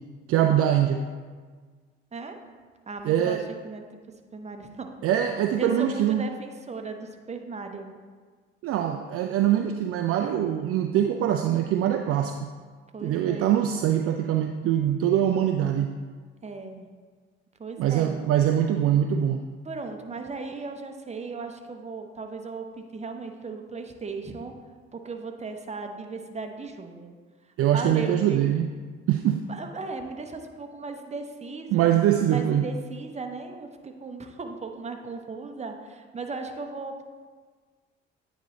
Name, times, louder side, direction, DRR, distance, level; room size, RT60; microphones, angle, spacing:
voice 1, 0.3-1.0 3.0-3.4 5.0-6.2 8.6-12.5 13.0-15.9 17.8-19.4 27.6-28.7 29.1-29.4 31.7-32.7, right 10 dB, 50° right, 5 dB, 0.4 m, -23 dB
voice 2, 2.9-3.8 4.3-4.9 5.6-7.9 12.9-13.6 16.4-16.9 17.6-18.2 19.6-24.5 24.9-27.2 27.6-28.5 29.5-31.9 32.3-37.0, right 4 dB, 20° right, 5 dB, 0.8 m, -37 dB
9.1 x 4.0 x 3.1 m, 1.5 s
hypercardioid pair, 50°, 31 cm